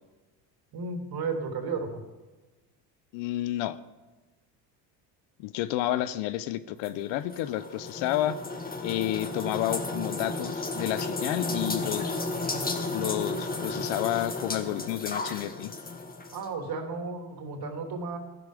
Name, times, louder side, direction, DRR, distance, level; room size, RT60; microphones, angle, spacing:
voice 1, 0.7-2.0 16.3-18.2, right 4 dB, 50° right, 3 dB, 3.2 m, -33 dB
voice 2, 3.1-3.8 5.4-8.4 8.8-12.1 12.9-15.7, left 14 dB, 75° left, 15 dB, 0.9 m, -30 dB
sound 1, 6.8-16.5, left 3 dB, 20° left, 1.7 m, -33 dB
15.0 x 11.5 x 5.1 m, 1.2 s
supercardioid pair, 90°, 47 cm